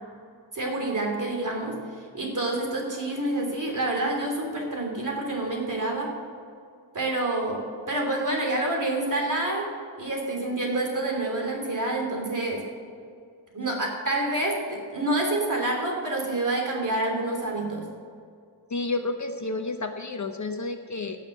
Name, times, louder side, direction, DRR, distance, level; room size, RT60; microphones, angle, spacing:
voice 1, 0.5-1.8 2.1-6.1 6.9-9.7 10.0-12.6 13.5-17.9, right 2 dB, 40° right, 0 dB, 3.0 m, -28 dB
voice 2, 18.7-21.2, left 3 dB, 40° left, 6 dB, 0.7 m, -30 dB
16.5 x 6.5 x 6.7 m, 2.3 s
wide cardioid pair, 135°, 47 cm